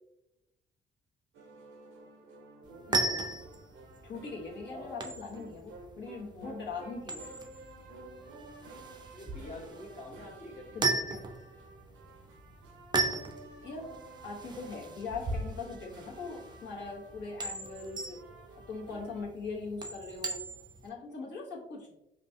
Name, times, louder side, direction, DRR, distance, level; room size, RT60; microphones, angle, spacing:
sound 1, 1.3-19.2, right 2 dB, 90° right, 0.7 m, -52 dB
sound 2, 2.6-20.9, right 3 dB, 20° right, 0.5 m, -37 dB
voice 1, 2.9-3.3 4.0-7.2 10.7-11.2 13.6-13.9 14.2-18.2 18.7-20.4 20.8-21.9, left 4 dB, 65° left, -3 dB, 1.1 m, -41 dB
voice 2, 4.7-5.2 9.1-11.0, left 1 dB, 35° left, -2 dB, 0.8 m, -46 dB
4.9 x 2.3 x 2.7 m, 0.85 s
cardioid pair, 90°, 20 cm